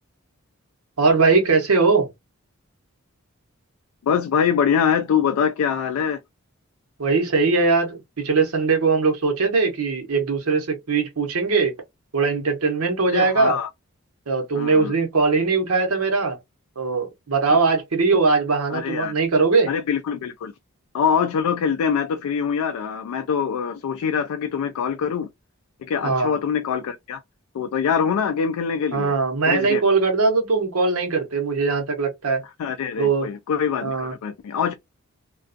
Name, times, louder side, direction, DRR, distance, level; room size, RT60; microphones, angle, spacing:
voice 1, 1.0-2.1 7.0-11.7 12.1-13.6 14.3-16.4 16.8-19.7 26.0-26.3 28.9-32.4 33.0-33.3 33.8-34.1, right 4 dB, 85° right, 0.8 m, -20 dB
voice 2, 4.0-6.2 13.1-13.7 14.5-14.9 17.5-17.6 18.7-19.1 19.7-20.5 20.9-25.3 25.8-27.2 27.5-29.1 29.5-29.8 32.6-34.7, left 7 dB, 85° left, 0.3 m, -24 dB
2.4 x 2.2 x 2.5 m
head